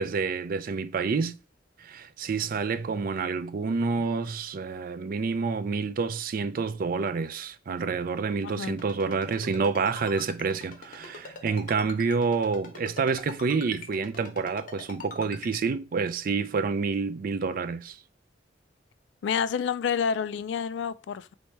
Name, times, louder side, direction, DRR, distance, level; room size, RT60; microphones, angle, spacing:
voice 1, 0.0-1.3 1.8-18.0, right 4 dB, 50° right, 0.4 m, -28 dB
voice 2, 8.4-8.8 19.2-21.3, left 7 dB, 70° left, 0.3 m, -29 dB
Ringtone, 8.8-15.6, left 4 dB, 50° left, 1.0 m, -42 dB
4.3 x 2.7 x 4.5 m
head